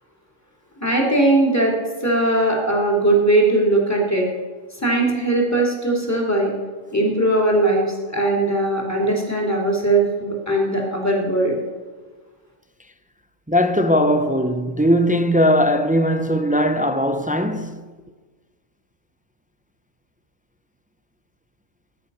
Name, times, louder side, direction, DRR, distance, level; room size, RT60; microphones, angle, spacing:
voice 1, 0.8-1.7 2.0-4.3 4.8-6.5 6.9-11.6, right 2 dB, 10° left, 3.1 m, -19 dB
voice 2, 13.5-17.8, equal, 15° right, 0.3 m, -19 dB
19.5 x 9.9 x 5.6 m
omnidirectional pair, 1.3 m